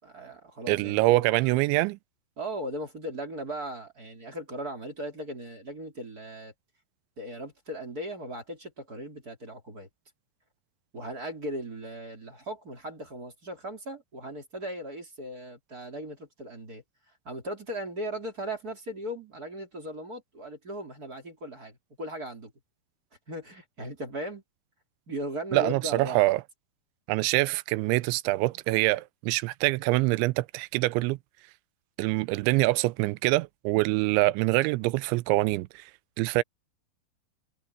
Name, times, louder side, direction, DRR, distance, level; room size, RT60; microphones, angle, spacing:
voice 1, 0.0-1.6 2.4-6.5 7.2-9.9 10.9-16.8 17.2-22.5 23.3-24.4 25.1-26.3, right 1 dB, 25° right, 2.9 m, -38 dB
voice 2, 0.7-2.0 25.5-26.4 27.1-31.2 32.0-35.8 36.2-36.4, right 21 dB, 85° right, 2.9 m, -25 dB
omnidirectional pair, 5.4 m